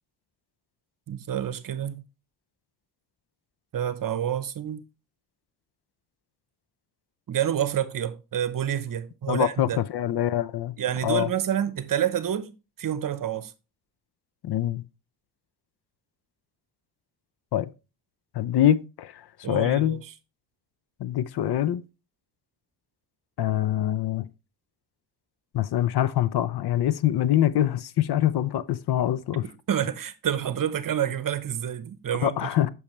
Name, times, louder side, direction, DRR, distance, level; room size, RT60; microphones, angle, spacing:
voice 1, 1.1-2.0 3.7-4.8 7.3-9.8 10.8-12.5 12.8-13.5 19.4-20.0 29.7-32.5, right 10 dB, 50° right, 0.9 m, -28 dB
voice 2, 9.3-10.7 11.0-11.3 14.4-14.8 17.5-17.7 18.3-19.2 19.5-20.0 21.0-21.8 23.4-24.3 25.5-29.4 32.2-32.7, left 12 dB, 65° left, 0.6 m, -24 dB
8.5 x 6.3 x 3.1 m
cardioid pair, 100°, 42 cm